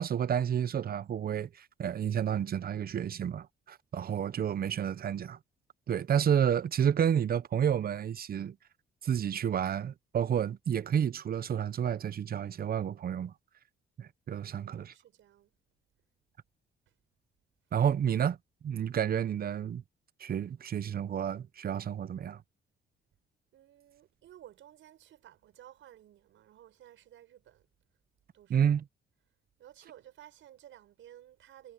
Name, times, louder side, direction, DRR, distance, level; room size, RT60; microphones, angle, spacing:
voice 1, 0.0-5.4 5.9-8.6 9.0-13.3 14.0-14.9 17.7-18.4 18.6-19.8 20.2-22.4 28.5-28.8, right 8 dB, 50° right, 0.8 m, -30 dB
voice 2, 14.4-15.5 16.9-17.0 23.5-27.7 28.3-28.8 29.6-31.7, right 12 dB, 75° right, 6.2 m, -55 dB
cardioid pair, 90°, 20 cm